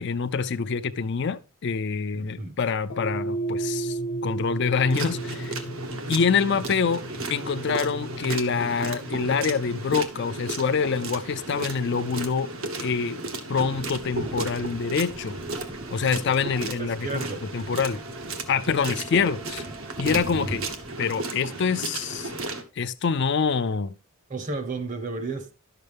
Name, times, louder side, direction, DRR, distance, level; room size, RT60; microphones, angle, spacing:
voice 1, 0.0-5.5 6.1-7.0 7.3-12.5 12.8-13.2 13.5-15.4 15.9-17.2 17.5-18.0 18.5-19.6 20.0-20.6 21.0-22.3 22.8-23.9, left 5 dB, 55° left, 0.4 m, -26 dB
voice 2, 2.1-2.6 16.6-17.4 24.3-25.5, right 3 dB, 35° right, 0.9 m, -33 dB
sound 1, 2.9-11.3, right 2 dB, 90° left, 1.0 m, -34 dB
sound 2, 4.9-22.6, right 2 dB, 75° right, 1.2 m, -34 dB
Thunder, 13.7-20.9, right 2 dB, 15° right, 0.5 m, -40 dB
11.0 x 6.7 x 3.4 m
head